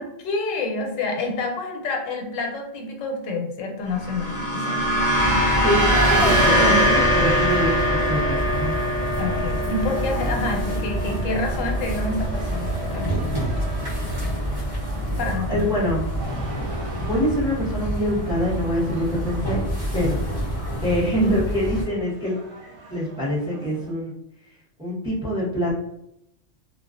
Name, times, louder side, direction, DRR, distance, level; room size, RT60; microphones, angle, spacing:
voice 1, 0.0-4.8 6.5-6.9 9.2-13.4 15.2-15.7, left 2 dB, 90° left, 2 dB, 1.0 m, -28 dB
sound 1, 3.9-12.4, equal, 45° left, 0.7 m, -23 dB
Race car auto racing, 4.8-23.9, right 1 dB, 60° right, 0.3 m, -33 dB
sound 2, 5.2-21.8, right 1 dB, 35° right, 0.8 m, -28 dB
voice 2, 6.1-8.8 15.1-16.1 16.9-19.6 19.9-20.2 20.8-22.3 22.9-24.1 24.8-25.7, equal, 5° right, -7 dB, 0.7 m, -25 dB
2.3 x 2.3 x 2.4 m, 0.77 s
omnidirectional pair, 1.3 m